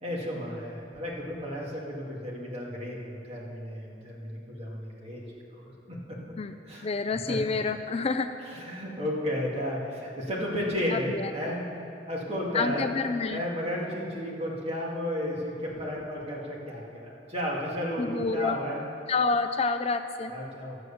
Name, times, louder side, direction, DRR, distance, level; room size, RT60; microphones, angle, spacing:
voice 1, 0.0-5.2 5.5-6.2 6.7-7.4 8.4-11.6 12.1-12.9 13.3-18.9 20.3-20.8, equal, 35° right, -4 dB, 2.3 m, -33 dB
voice 2, 6.8-8.3 10.9-11.3 12.5-13.4 18.0-18.6 19.1-20.3, left 4 dB, 35° left, 9 dB, 0.4 m, -28 dB
12.5 x 7.9 x 6.9 m, 2.8 s
head